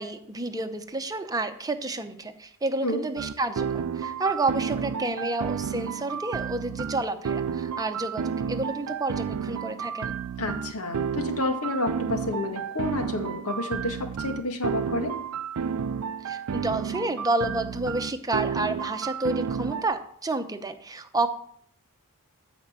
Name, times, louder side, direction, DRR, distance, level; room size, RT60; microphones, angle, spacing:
voice 1, 0.0-10.1 16.2-21.3, right 2 dB, 15° right, 8 dB, 0.9 m, -30 dB
sound 1, 3.2-19.8, right 7 dB, 70° right, 0.4 m, -31 dB
voice 2, 10.4-15.1, left 2 dB, 80° left, 4 dB, 2.0 m, -30 dB
14.5 x 5.2 x 7.6 m, 0.64 s
head